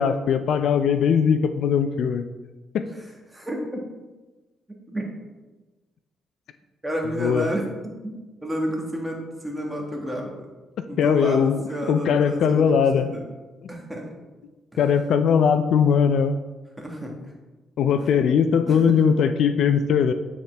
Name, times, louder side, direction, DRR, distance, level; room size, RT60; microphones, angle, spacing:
voice 1, 0.0-2.3 2.7-2.9 7.2-7.5 11.0-11.6 11.9-13.1 14.8-16.4 17.8-20.1, left 7 dB, 70° left, 10 dB, 0.3 m, -20 dB
voice 2, 3.3-3.8 4.9-5.0 6.8-7.7 8.0-10.5 10.9-13.2 13.7-14.1 16.8-17.1 18.7-18.8, right 1 dB, 10° right, 0 dB, 1.5 m, -30 dB
8.4 x 4.2 x 3.4 m, 1.2 s
cardioid pair, 90°, 0 cm